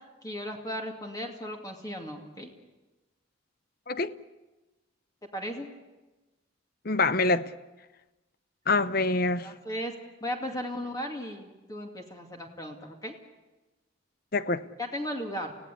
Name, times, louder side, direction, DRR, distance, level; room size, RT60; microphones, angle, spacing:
voice 1, 0.2-2.5 5.3-5.7 9.4-9.9 10.2-13.1 14.8-15.6, equal, 20° left, 2.5 m, -36 dB
voice 2, 6.8-7.5 8.7-9.5 14.3-14.6, left 3 dB, 45° left, 0.8 m, -25 dB
29.5 x 17.0 x 8.4 m
head